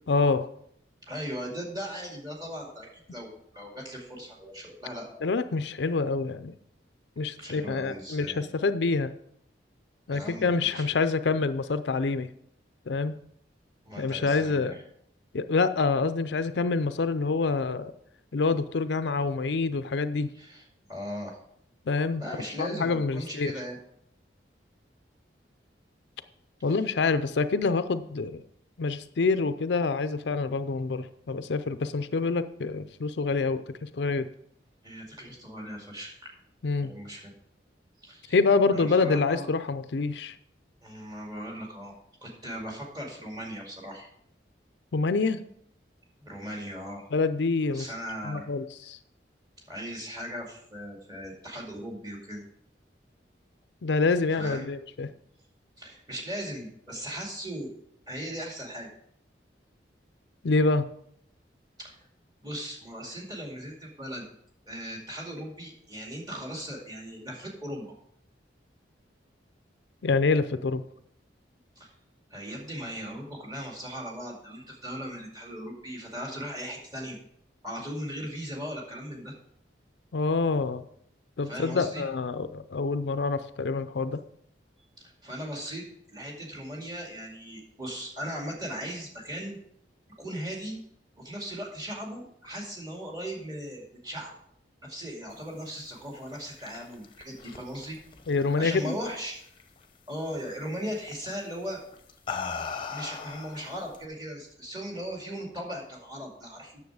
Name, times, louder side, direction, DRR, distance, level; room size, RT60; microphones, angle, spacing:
voice 1, 0.1-0.5 5.2-6.5 7.2-9.1 10.1-12.3 12.9-13.1 14.0-14.8 15.3-17.9 18.3-20.3 21.9-22.2 22.6-23.5 26.6-28.4 28.8-34.3 36.6-36.9 38.3-40.4 44.9-45.4 47.1-47.9 48.2-49.0 53.8-55.1 60.4-60.8 70.0-70.8 80.1-80.8 81.4-84.2 98.3-99.0, left 4 dB, 75° left, 11 dB, 0.5 m, -26 dB
voice 2, 1.1-5.3 7.4-8.6 10.1-10.8 13.9-14.8 20.4-20.6 20.9-21.4 22.2-23.8 26.7-26.8 34.8-36.3 36.8-37.3 38.0-38.4 38.7-39.5 40.8-41.9 42.2-44.1 46.2-47.0 47.7-48.5 49.7-52.4 54.3-54.7 55.8-57.7 58.1-58.9 61.8-62.0 62.4-64.2 64.7-68.0 71.8-71.9 72.3-77.2 77.6-79.3 81.4-82.0 85.0-89.6 90.2-90.8 91.2-94.3 94.8-98.0 98.6-99.4 100.1-101.8 102.9-106.8, equal, 20° right, -1 dB, 2.2 m, -38 dB
sound 1, 96.2-99.1 99.4-99.8 101.1-101.3 101.9-104.0, left 5 dB, 30° left, 0.8 m, -38 dB
9.4 x 6.9 x 4.8 m, 0.70 s
head